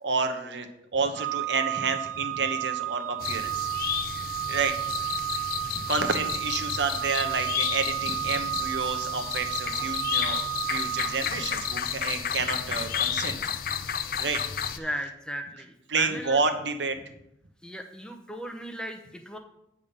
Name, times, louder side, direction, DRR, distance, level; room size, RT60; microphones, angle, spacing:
voice 1, 0.0-3.7 4.5-4.8 5.7-13.4 14.2-14.4 14.7-14.8 15.9-17.0, right 4 dB, 75° right, 7 dB, 0.9 m, -30 dB
Organ, 1.1-11.9, right 15 dB, 55° right, 0.7 m, -32 dB
sound 1, 3.2-14.8, left 9 dB, 50° left, 0.4 m, -32 dB
voice 2, 14.8-16.4 17.6-19.4, equal, 5° left, 5 dB, 0.6 m, -36 dB
8.5 x 3.6 x 6.6 m, 0.80 s
head